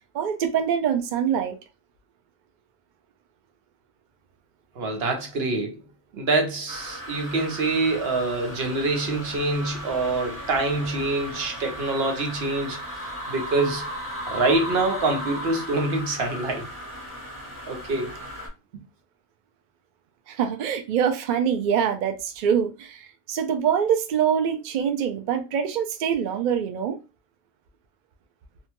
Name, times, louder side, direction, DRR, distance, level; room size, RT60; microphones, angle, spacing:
voice 1, 0.1-1.6 20.3-27.0, right 8 dB, 80° right, 0.4 m, -24 dB
voice 2, 4.8-5.8 6.1-13.9 14.3-16.7 17.7-18.1, right 2 dB, 55° right, 0.9 m, -25 dB
sound 1, 6.7-18.5, equal, 15° right, 0.9 m, -36 dB
2.7 x 2.1 x 2.9 m
omnidirectional pair, 1.4 m